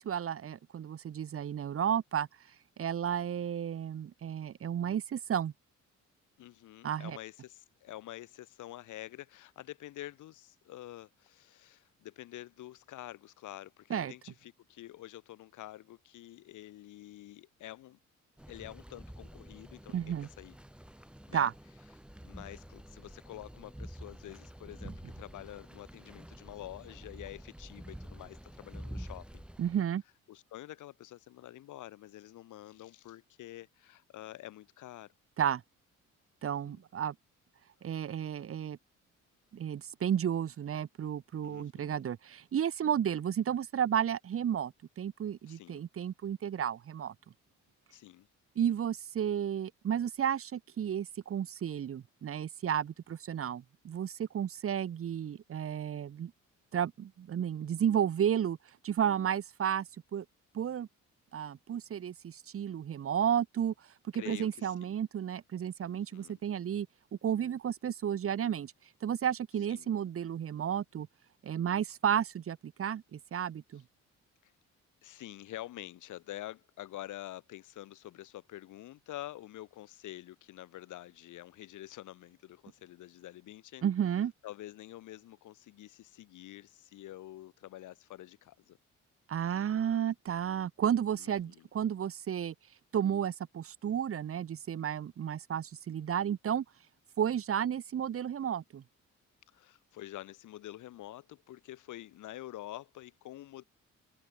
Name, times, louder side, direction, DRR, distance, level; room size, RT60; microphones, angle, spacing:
voice 1, 0.0-2.3 2.8-5.5 6.8-7.2 13.9-14.1 19.9-20.3 21.3-21.5 29.6-30.0 35.4-35.6 36.4-37.1 37.8-38.8 39.5-47.1 48.6-56.3 56.7-58.6 58.8-60.2 60.5-60.9 61.3-63.7 64.1-66.9 67.2-68.7 69.0-71.1 71.4-73.8 83.8-84.3 89.3-92.5 92.9-96.6 97.2-98.8, right 9 dB, 50° right, 1.1 m, -32 dB
voice 2, 6.4-18.0 18.5-20.6 21.3-21.5 22.2-29.4 30.3-35.1 36.4-36.8 41.4-42.0 45.5-45.8 47.9-48.3 64.1-65.0 65.8-66.4 69.7-69.9 74.4-74.5 75.0-83.8 84.4-88.8 91.2-91.7 99.5-103.6, left 14 dB, 80° left, 2.1 m, -47 dB
sound 1, 18.4-29.8, equal, 5° right, 5.6 m, -48 dB
cardioid pair, 90°, 30 cm